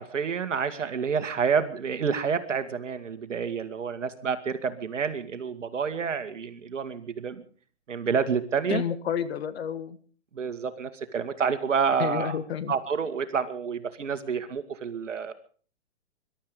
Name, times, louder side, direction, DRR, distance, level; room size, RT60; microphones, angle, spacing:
voice 1, 0.0-7.4 7.9-8.8 10.3-12.4 12.7-15.3, right 6 dB, 80° right, 10 dB, 2.1 m, -29 dB
voice 2, 8.7-10.0 12.0-12.7, left 8 dB, 55° left, 13 dB, 1.6 m, -30 dB
22.0 x 12.0 x 5.3 m, 0.44 s
hypercardioid pair, 145°, 36 cm